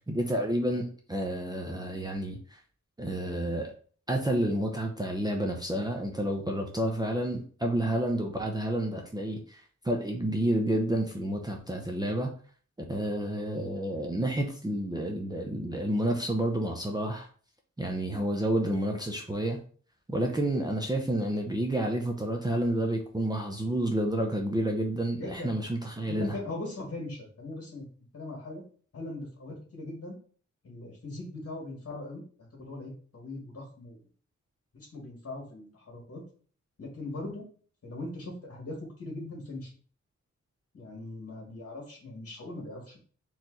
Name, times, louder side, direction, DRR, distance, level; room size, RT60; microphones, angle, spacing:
voice 1, 0.1-2.6 3.0-3.7 4.1-12.3 12.9-17.3 17.8-19.6 20.1-26.4, right 1 dB, 15° right, 0.6 m, -30 dB
voice 2, 25.1-25.6 26.1-27.9 28.1-28.6 28.9-30.2 30.6-32.2 32.5-34.0 34.7-36.2 36.8-37.4 37.8-39.7 40.7-43.0, left 2 dB, 55° left, 2.0 m, -40 dB
4.4 x 3.0 x 3.9 m
wide cardioid pair, 155°, 30 cm